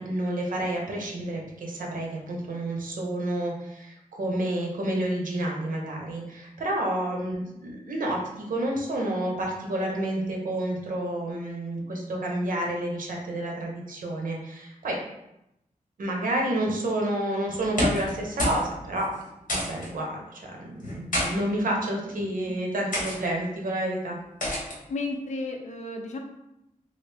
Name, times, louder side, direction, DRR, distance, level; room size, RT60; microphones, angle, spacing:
voice 1, 0.0-15.0 16.0-19.1 19.5-24.2, right 1 dB, 90° right, -1 dB, 0.7 m, -29 dB
sound 1, 17.6-18.1 18.4-18.7 18.9-19.0 19.5-19.9 20.8-21.3 22.1-22.3 22.9-23.2 24.4-24.8, left 1 dB, 85° left, 1.0 m, -28 dB
voice 2, 24.9-26.2, left 3 dB, 60° left, 3 dB, 0.5 m, -32 dB
3.1 x 2.5 x 3.3 m, 0.86 s
wide cardioid pair, 125°, 14 cm